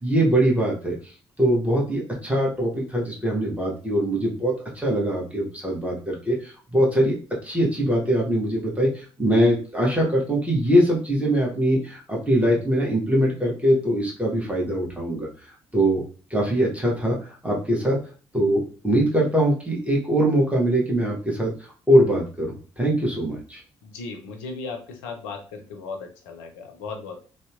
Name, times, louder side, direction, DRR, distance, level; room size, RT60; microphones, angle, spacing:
voice 1, 0.0-0.9 1.4-7.2 7.4-15.3 15.7-16.0 16.3-18.0 18.3-21.5 21.9-22.5 22.8-23.6, right 1 dB, 10° right, -3 dB, 1.0 m, -22 dB
voice 2, 23.8-27.3, left 4 dB, 70° left, 4 dB, 0.5 m, -36 dB
2.7 x 2.0 x 2.4 m, 0.37 s
figure-of-eight pair, 40°, 14 cm